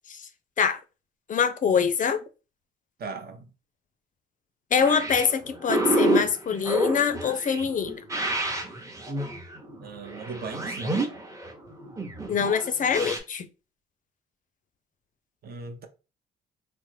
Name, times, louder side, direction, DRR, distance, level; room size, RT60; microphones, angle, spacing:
voice 1, 1.3-2.2 4.7-8.0 12.3-13.5, left 6 dB, 40° left, 0.4 m, -24 dB
voice 2, 3.0-3.5 9.8-11.0 15.4-15.9, right 4 dB, 50° right, 0.6 m, -38 dB
Space swirls, 4.8-13.2, right 1 dB, 15° right, 0.7 m, -29 dB
3.3 x 2.1 x 3.1 m
cardioid pair, 90°, 20 cm